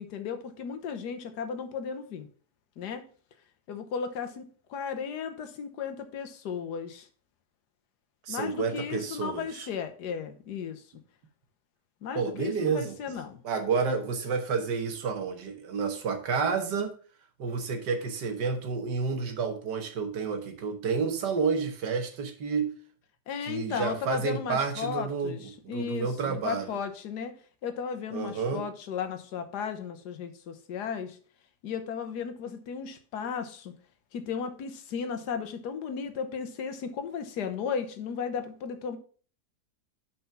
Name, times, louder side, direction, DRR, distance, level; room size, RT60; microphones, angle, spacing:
voice 1, 0.0-2.3 2.8-3.0 3.7-7.1 8.3-10.8 12.0-13.4 23.3-25.4 25.7-27.3 27.6-31.2 31.6-33.7 34.1-39.0, left 6 dB, 75° left, 9 dB, 1.5 m, -35 dB
voice 2, 8.2-9.7 12.2-13.0 13.4-16.9 17.4-22.7 23.4-26.8 28.1-28.7, right 5 dB, 85° right, 6 dB, 1.8 m, -30 dB
5.7 x 5.3 x 5.7 m, 0.42 s
omnidirectional pair, 1.8 m